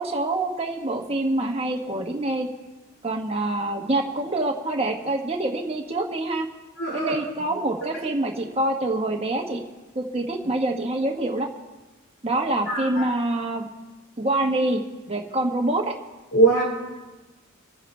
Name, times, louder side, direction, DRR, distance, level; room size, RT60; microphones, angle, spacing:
voice 1, 0.0-2.5 3.0-6.5 6.9-9.6 9.9-11.5 12.2-13.7 14.2-15.9, right 2 dB, 30° right, 2 dB, 1.4 m, -26 dB
voice 2, 6.8-7.1 12.7-13.1 16.3-16.6, right 3 dB, 70° left, -3 dB, 5.0 m, -21 dB
26.5 x 9.8 x 3.3 m, 1.2 s
head